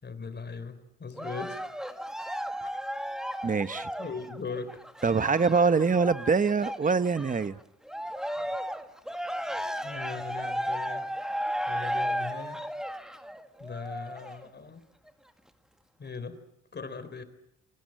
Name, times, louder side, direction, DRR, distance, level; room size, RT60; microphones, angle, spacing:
voice 1, 0.0-1.6 2.6-2.7 4.0-4.8 8.4-8.5 9.8-11.1 11.7-12.7 13.6-14.8 16.0-16.4 16.7-17.2, left 4 dB, 35° left, 12 dB, 3.9 m, -39 dB
Cheering, 1.2-7.5 7.9-14.5 15.1-15.2, equal, ahead, 1.8 m, -34 dB
voice 2, 3.4-3.9 5.0-7.6, right 5 dB, 25° right, 14 dB, 0.9 m, -24 dB
28.5 x 23.0 x 7.7 m, 0.83 s
cardioid pair, 90°, 30 cm